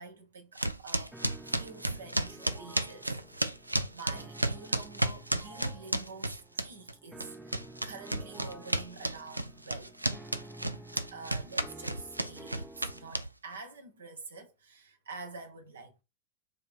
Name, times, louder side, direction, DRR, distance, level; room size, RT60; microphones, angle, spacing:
voice 1, 0.0-3.4 3.9-10.3 11.1-16.0, right 4 dB, 65° right, 1.5 m, -47 dB
sound 1, 0.6-6.9 7.2-13.6, right 1 dB, 85° right, 0.5 m, -32 dB
sound 2, 1.1-13.1, right 1 dB, 5° right, 0.6 m, -51 dB
7.3 x 3.3 x 4.4 m
figure-of-eight pair, 90°, 0 cm